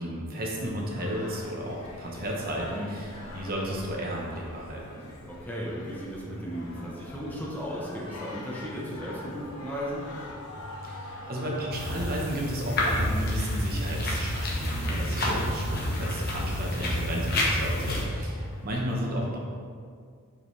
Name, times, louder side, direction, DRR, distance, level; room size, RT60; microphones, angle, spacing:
voice 1, 0.0-5.0 10.8-19.4, right 1 dB, 40° right, -2 dB, 1.0 m, -33 dB
Singing, 0.6-18.9, left 1 dB, 80° left, 0.9 m, -43 dB
voice 2, 5.3-10.0 17.7-17.9, equal, 10° left, -5 dB, 0.8 m, -36 dB
sound 1, 11.7-18.0, left 1 dB, 45° left, 1.1 m, -29 dB
6.7 x 5.4 x 3.2 m, 2.1 s
head